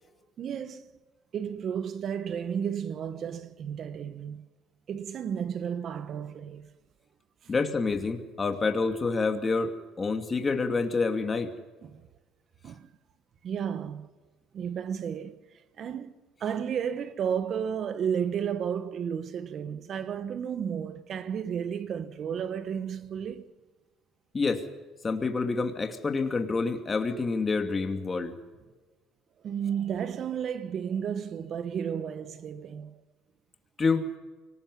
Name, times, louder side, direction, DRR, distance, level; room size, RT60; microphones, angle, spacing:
voice 1, 0.4-0.9 1.3-4.4 4.9-6.7 11.8-12.0 12.6-12.9 13.4-14.1 14.5-15.4 15.8-23.5 29.4-33.0, right 8 dB, 55° right, 1.4 m, -33 dB
voice 2, 7.5-11.5 24.3-24.6 25.0-28.4 33.8-34.1, left 4 dB, 30° left, 2.6 m, -28 dB
24.5 x 19.5 x 5.6 m
supercardioid pair, 85°, 0 cm